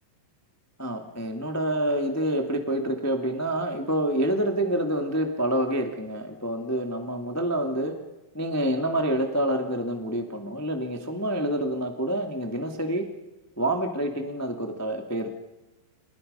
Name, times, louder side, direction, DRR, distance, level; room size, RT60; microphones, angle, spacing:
voice 1, 0.8-7.9 8.3-13.0 13.6-15.3, right 1 dB, 15° left, 3 dB, 0.5 m, -27 dB
30.0 x 28.5 x 5.6 m, 1.0 s
omnidirectional pair, 4.9 m